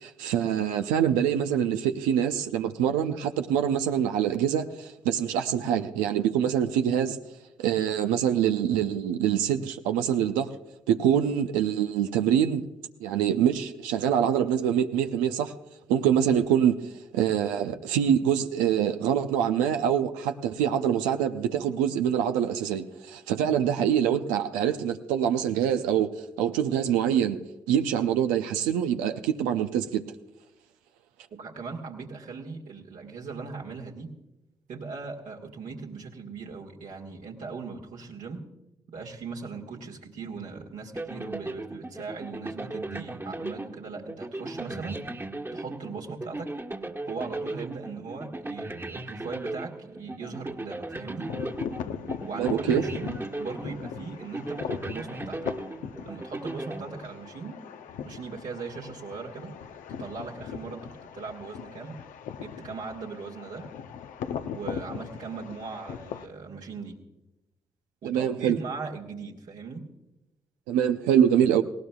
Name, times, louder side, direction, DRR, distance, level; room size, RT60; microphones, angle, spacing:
voice 1, 0.0-7.2 7.6-10.5 10.9-12.6 13.0-15.5 15.9-16.8 17.1-26.1 26.4-27.4 27.7-30.0 52.4-52.8 68.0-68.6 70.7-71.6, right 9 dB, 90° right, 7 dB, 0.6 m, -25 dB
voice 2, 31.4-34.1 34.7-38.4 38.9-45.0 45.5-46.5 47.0-51.3 52.2-55.4 56.0-57.6 58.0-59.6 59.9-62.0 62.4-63.7 64.5-67.0 68.0-69.9, right 4 dB, 75° right, -2 dB, 1.9 m, -39 dB
sound 1, 40.9-57.5, right 2 dB, 15° right, 1.4 m, -37 dB
sound 2, 51.3-66.3, left 8 dB, 80° left, 0.6 m, -39 dB
19.0 x 17.5 x 2.3 m, 0.98 s
hypercardioid pair, 40°, 13 cm